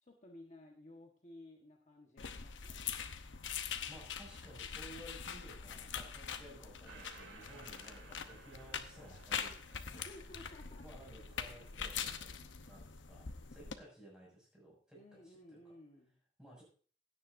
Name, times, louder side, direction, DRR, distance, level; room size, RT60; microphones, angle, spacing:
voice 1, 0.0-2.9 9.9-11.1 14.9-16.2, left 1 dB, 40° left, 0 dB, 1.3 m, -56 dB
sound 1, 2.2-13.7, left 7 dB, 80° left, 0.9 m, -44 dB
voice 2, 3.9-9.5 9.9-10.1 10.8-12.3 12.7-15.0 15.2-15.6 16.4-16.6, right 1 dB, 5° right, -3 dB, 6.3 m, -56 dB
sound 2, 6.9-12.3, right 4 dB, 85° right, 2.1 m, -59 dB
16.5 x 9.6 x 2.6 m, 0.42 s
head